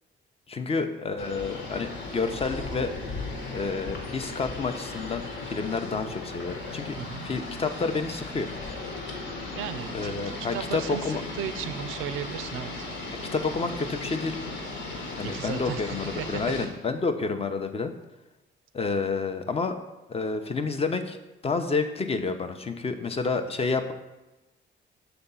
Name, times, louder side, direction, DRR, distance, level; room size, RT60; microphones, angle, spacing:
voice 1, 0.5-2.9 3.5-8.5 9.9-11.2 13.3-14.4 15.2-17.9 18.7-19.8 20.1-21.2 21.4-23.9, left 4 dB, 30° left, 7 dB, 0.6 m, -29 dB
sound 1, 1.2-16.6, left 3 dB, 70° left, 1.3 m, -36 dB
voice 2, 9.6-10.2 10.5-11.0 11.4-12.7 15.2-16.4, right 10 dB, 85° right, 11 dB, 0.4 m, -35 dB
6.8 x 3.5 x 5.5 m, 1.0 s
cardioid pair, 90°, 20 cm